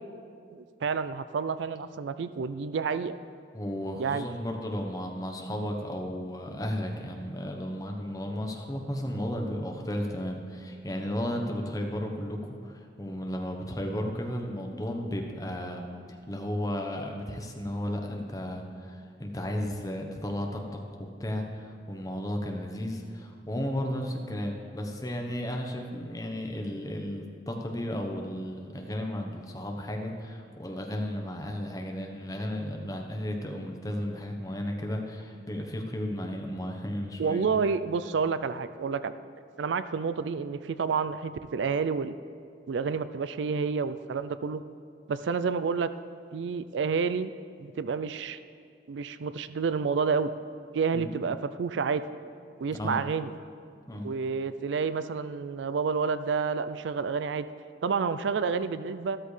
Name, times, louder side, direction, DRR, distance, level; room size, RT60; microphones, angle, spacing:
voice 1, 0.5-3.2 4.0-4.3 37.2-39.1 39.6-42.1 42.7-44.6 45.1-45.9 46.3-47.3 47.6-48.4 48.9-50.3 50.7-52.0 52.6-53.3 54.0-57.5 57.8-59.2, right 5 dB, 80° right, 13 dB, 0.4 m, -29 dB
voice 2, 3.5-37.6 50.9-51.1 52.7-53.0 53.9-54.1, equal, 20° left, 2 dB, 1.0 m, -34 dB
13.0 x 13.0 x 3.3 m, 2.3 s
head